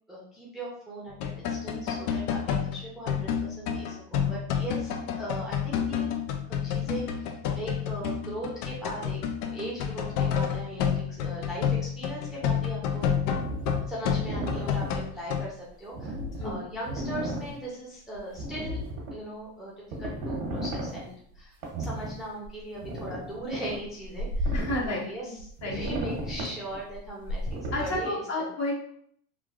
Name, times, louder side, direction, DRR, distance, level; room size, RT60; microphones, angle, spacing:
voice 1, 0.1-6.1 6.5-7.3 7.5-9.2 9.4-13.1 13.9-16.1 16.4-18.8 19.1-19.7 20.0-24.6 24.8-28.5, right 1 dB, ahead, -6 dB, 0.5 m, -39 dB
sound 1, 1.1-15.5, left 8 dB, 85° left, 0.5 m, -29 dB
voice 2, 4.3-4.7 16.4-16.7 24.5-25.1 25.6-26.0 27.7-28.9, left 1 dB, 35° left, -2 dB, 0.9 m, -32 dB
sound 2, 13.4-14.9 15.9-17.5 18.1-19.1 19.9-21.1 21.6-22.2 22.4-22.5 22.7-25.0 25.4-28.1, right 1 dB, 85° right, 1.0 m, -33 dB
3.2 x 2.3 x 2.4 m, 0.63 s
supercardioid pair, 125°, 43 cm